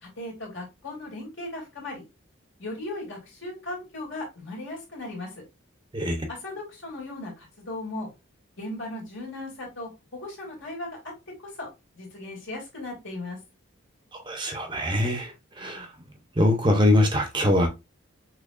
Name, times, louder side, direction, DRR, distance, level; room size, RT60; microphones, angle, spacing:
voice 1, 0.0-2.0 2.6-5.4 6.3-8.1 8.6-11.1 11.4-11.7 11.9-13.4 15.6-15.9, left 2 dB, 60° left, 2.7 m, -37 dB
voice 2, 5.9-6.3 14.3-15.3 15.6-15.9 16.4-17.7, left 1 dB, 20° right, 0.8 m, -22 dB
6.5 x 3.1 x 2.5 m
head